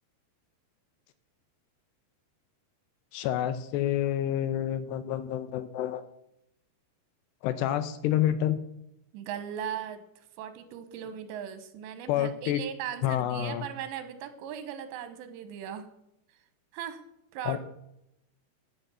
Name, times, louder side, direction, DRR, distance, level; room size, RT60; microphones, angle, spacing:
voice 1, 3.1-6.0 7.4-8.6 12.1-12.6 13.0-13.7 17.4-17.6, left 11 dB, 80° left, 12 dB, 2.6 m, -28 dB
voice 2, 9.1-15.9 16.7-17.0 17.3-17.6, right 9 dB, 85° right, 10 dB, 3.2 m, -38 dB
12.0 x 6.2 x 7.8 m, 0.83 s
omnidirectional pair, 5.1 m